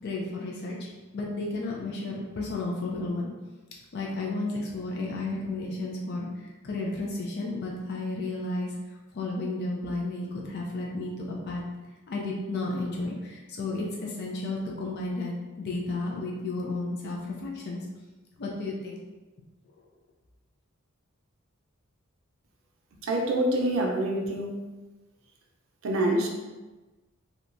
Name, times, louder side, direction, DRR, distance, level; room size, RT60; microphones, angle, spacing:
voice 1, 0.0-0.9 1.1-3.3 3.9-8.7 9.1-11.6 12.1-17.8 18.4-19.1, left 2 dB, 50° left, -2 dB, 0.4 m, -32 dB
voice 2, 23.0-24.5 25.8-26.3, right 1 dB, 65° right, 1 dB, 0.5 m, -26 dB
2.9 x 2.2 x 2.5 m, 1.2 s
head